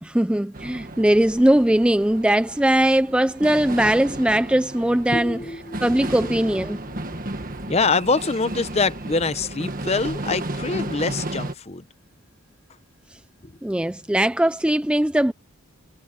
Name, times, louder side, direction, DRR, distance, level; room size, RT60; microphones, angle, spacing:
voice 1, 0.0-5.4 5.8-6.8 13.6-15.3, right 1 dB, 5° right, 0.3 m, -20 dB
sound 1, 0.5-11.5, right 2 dB, 40° right, 1.6 m, -33 dB
voice 2, 5.1-6.3 6.7-11.8 13.4-13.5, left 4 dB, 30° left, 0.7 m, -25 dB
head